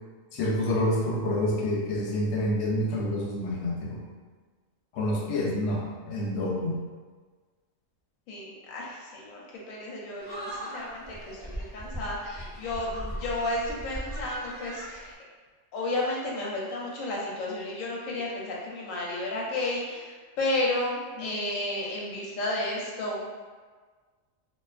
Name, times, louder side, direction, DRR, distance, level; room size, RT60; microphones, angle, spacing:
voice 1, 0.3-4.0 4.9-6.8 21.2-21.3, left 1 dB, 65° left, -3 dB, 0.8 m, -28 dB
voice 2, 8.3-15.1 15.7-23.3, left 2 dB, 85° left, -3 dB, 1.0 m, -32 dB
sound 1, 10.2-15.1, right 1 dB, 10° left, 0.8 m, -39 dB
2.5 x 2.3 x 2.3 m, 1.4 s
omnidirectional pair, 1.4 m